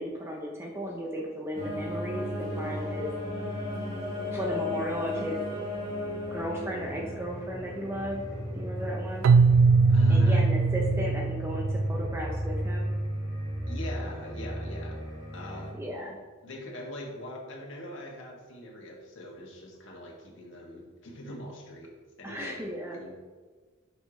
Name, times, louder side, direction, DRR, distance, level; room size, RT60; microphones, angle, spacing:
voice 1, 0.0-3.1 4.2-5.4 6.3-8.2 8.5-9.3 10.1-12.9 15.7-16.2 22.2-23.0, equal, 10° right, -2 dB, 0.8 m, -35 dB
sound 1, 1.5-15.7, equal, 30° right, 2.7 m, -32 dB
Keyboard (musical), 9.2-12.2, right 5 dB, 75° right, 0.3 m, -22 dB
voice 2, 9.9-10.5 13.7-15.0 15.3-15.7 16.4-21.9 22.2-22.6 22.9-23.2, equal, 70° left, -1 dB, 2.1 m, -42 dB
11.5 x 6.3 x 3.2 m, 1.4 s
head